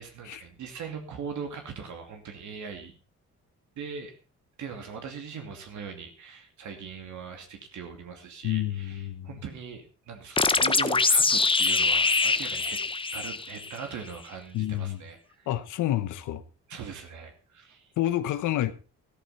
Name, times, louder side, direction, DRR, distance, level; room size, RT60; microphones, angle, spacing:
voice 1, 0.0-3.0 3.8-4.2 4.6-12.8 13.1-15.5 16.7-17.9, right 6 dB, 70° right, 2.6 m, -40 dB
voice 2, 8.4-9.3 14.5-15.0 15.5-16.4 18.0-18.7, left 13 dB, 85° left, 1.1 m, -28 dB
sound 1, 10.4-13.8, left 4 dB, 15° left, 0.8 m, -24 dB
13.5 x 13.5 x 4.2 m
cardioid pair, 90°, 30 cm